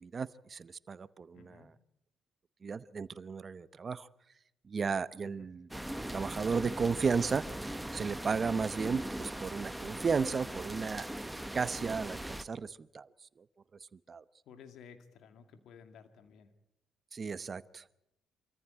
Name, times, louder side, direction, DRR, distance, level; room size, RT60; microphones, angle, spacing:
voice 1, 0.0-1.6 2.6-4.1 4.7-5.7 6.1-7.4 7.9-11.3 11.5-13.1 14.1-14.2 17.1-17.9, right 5 dB, 40° right, 16 dB, 0.9 m, -34 dB
voice 2, 1.3-1.7 5.2-5.5 14.5-16.5, left 6 dB, 75° left, 8 dB, 2.0 m, -55 dB
sound 1, 5.7-12.4, right 1 dB, 5° right, 1.1 m, -40 dB
26.5 x 14.5 x 8.9 m, 0.87 s
cardioid pair, 90°, 0 cm